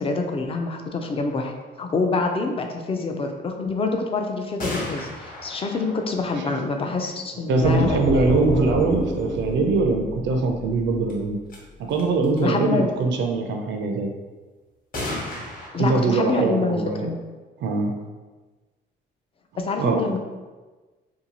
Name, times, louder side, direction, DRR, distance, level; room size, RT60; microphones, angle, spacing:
voice 1, 0.0-1.5 1.8-8.0 12.4-12.9 15.7-17.2 19.6-20.2, left 3 dB, 30° left, 4 dB, 0.4 m, -26 dB
sound 1, 4.6-7.4 11.1-11.2 11.5-11.6 11.9-12.4 14.9-15.7, left 1 dB, 45° left, 0.8 m, -34 dB
voice 2, 7.5-11.4 11.8-14.1 15.7-17.1 17.6-17.9 19.8-20.0, right 3 dB, 65° right, 4 dB, 0.4 m, -22 dB
sound 2, 7.6-11.3, left 1 dB, 75° left, 0.6 m, -29 dB
2.7 x 2.2 x 2.8 m, 1.3 s
cardioid pair, 90°, 20 cm